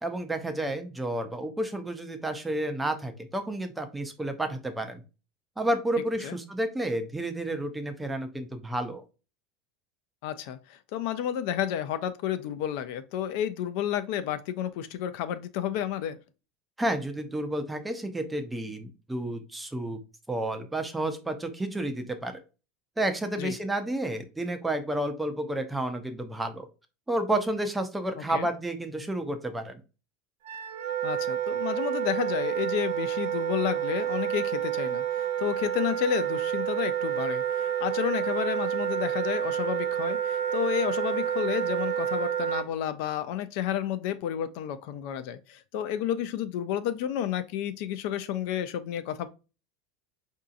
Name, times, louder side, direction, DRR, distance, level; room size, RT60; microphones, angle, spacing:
voice 1, 0.0-5.0 5.6-9.0 16.8-20.0 20.3-22.4 23.0-26.7 27.1-29.8, right 1 dB, 5° right, 0.4 m, -31 dB
voice 2, 10.2-16.2 23.4-23.5 28.3-28.5 31.0-49.3, left 10 dB, 60° left, 0.4 m, -31 dB
Wind instrument woodwind instrument, 30.4-42.6, right 10 dB, 70° right, 0.6 m, -29 dB
4.6 x 2.7 x 2.4 m
supercardioid pair, 160°, 0 cm